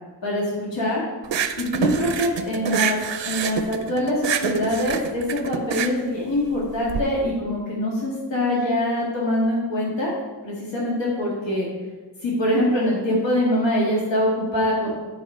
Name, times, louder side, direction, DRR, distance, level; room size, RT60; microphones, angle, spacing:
voice 1, 0.2-1.0 1.5-10.1 10.4-11.7 12.2-14.9, left 1 dB, 85° left, -5 dB, 1.9 m, -24 dB
sound 1, 1.2-7.0, right 7 dB, 85° right, 0.6 m, -27 dB
9.8 x 5.1 x 4.3 m, 1.3 s
wide cardioid pair, 125°, 43 cm